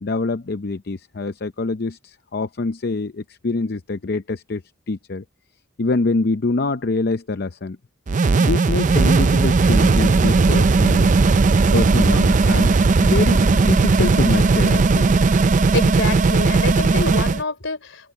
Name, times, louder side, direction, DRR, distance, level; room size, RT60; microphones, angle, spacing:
voice 1, 0.0-4.6 4.9-5.2 5.8-7.8 8.4-11.1 11.7-12.7 13.0-15.2, left 3 dB, 50° left, 0.6 m, -25 dB
sound 1, 8.1-17.4, right 3 dB, 40° right, 0.4 m, -16 dB
voice 2, 15.5-18.1, left 3 dB, 65° left, 3.3 m, -27 dB
open air
head